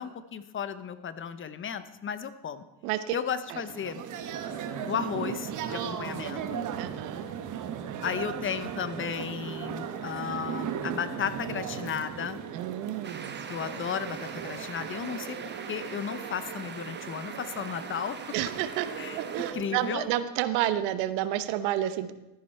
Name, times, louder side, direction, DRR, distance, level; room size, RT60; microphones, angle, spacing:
voice 1, 0.0-2.6 3.1-4.1 4.9-6.7 8.0-12.4 13.5-15.4 15.7-18.2 19.0-19.2 19.5-20.1, left 7 dB, 30° left, 13 dB, 0.7 m, -34 dB
voice 2, 2.8-3.2 3.5-3.6 6.8-7.3 12.5-13.4 18.3-18.9 19.2-22.1, right 12 dB, 80° right, 13 dB, 1.0 m, -30 dB
sound 1, 3.5-20.0, right 8 dB, 45° right, 1.3 m, -37 dB
sound 2, 13.0-19.5, right 6 dB, 25° right, 1.1 m, -43 dB
13.5 x 10.0 x 4.4 m, 1.0 s
supercardioid pair, 110°, 41 cm